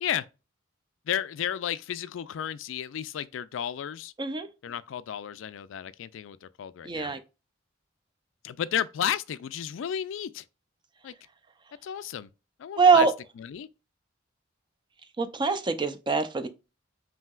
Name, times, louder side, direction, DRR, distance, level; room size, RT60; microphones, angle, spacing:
voice 1, 1.1-4.1 4.6-7.1 8.4-10.4 11.0-11.1 11.8-12.3 12.6-13.1 13.4-13.7, left 9 dB, 70° left, 0.3 m, -33 dB
voice 2, 6.8-7.2 12.8-13.1 15.2-16.5, right 5 dB, 25° right, 0.4 m, -23 dB
5.5 x 2.8 x 2.3 m
head